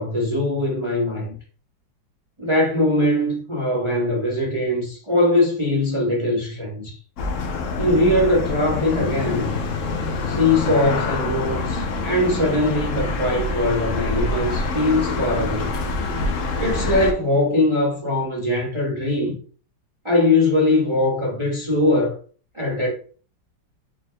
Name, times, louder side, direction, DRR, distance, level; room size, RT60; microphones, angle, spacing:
voice 1, 0.0-1.3 2.4-7.0 7.8-9.5 10.3-15.8 16.6-19.4 20.0-22.1 22.5-22.9, left 1 dB, 30° right, 0.6 m, -21 dB
sound 1, 7.2-17.1, left 3 dB, 80° left, 0.7 m, -26 dB
4.7 x 4.2 x 2.2 m
omnidirectional pair, 2.1 m